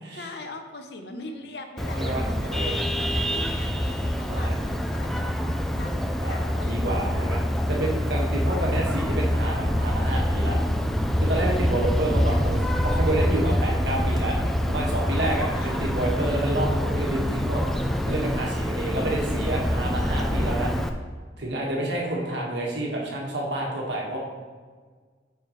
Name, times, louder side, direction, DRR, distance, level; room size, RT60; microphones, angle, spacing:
voice 1, 0.1-2.6 3.0-5.3 5.8-7.1 11.8-12.5 15.5-15.9, left 2 dB, 60° left, 6 dB, 0.7 m, -41 dB
Vehicle horn car horn honking, 1.8-20.9, equal, ahead, 0.3 m, -25 dB
voice 2, 1.9-2.8 4.3-4.6 6.2-10.6 11.2-14.4 14.7-17.6 18.0-20.7 21.4-24.2, right 1 dB, 65° right, -2 dB, 1.6 m, -29 dB
9.2 x 6.0 x 3.1 m, 1.5 s
head